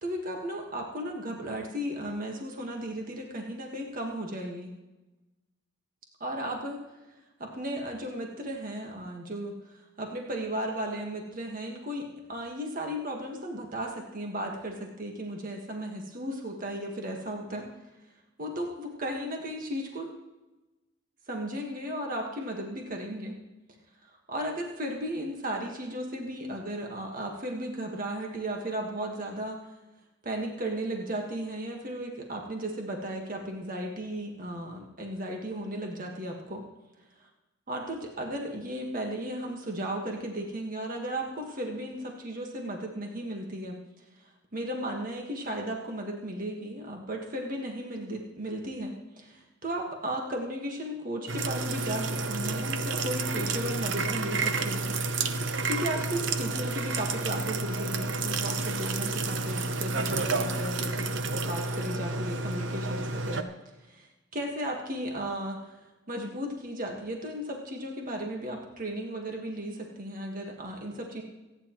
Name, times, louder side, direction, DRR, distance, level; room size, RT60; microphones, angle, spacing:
voice 1, 0.0-4.7 6.2-6.8 7.4-17.7 18.4-20.1 21.3-23.3 24.0-29.6 30.2-36.6 37.7-44.0 44.5-54.9 55.4-63.5 63.8-64.1 64.3-65.7 66.1-71.2, right 1 dB, 45° right, 1 dB, 1.6 m, -35 dB
sound 1, 51.3-63.4, right 3 dB, 70° right, 0.8 m, -30 dB
25.5 x 9.8 x 3.1 m, 1.1 s
head